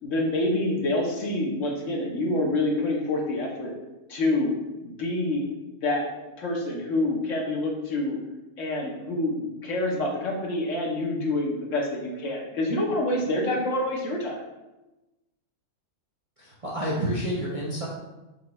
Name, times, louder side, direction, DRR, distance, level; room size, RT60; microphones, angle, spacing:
voice 1, 0.0-3.7 4.1-4.5 4.8-5.4 5.8-6.1 6.4-8.1 8.6-14.4, left 2 dB, 65° left, -1 dB, 1.2 m, -27 dB
voice 2, 16.4-17.9, equal, 35° right, -6 dB, 0.5 m, -29 dB
4.5 x 2.9 x 4.0 m, 1.0 s
omnidirectional pair, 1.5 m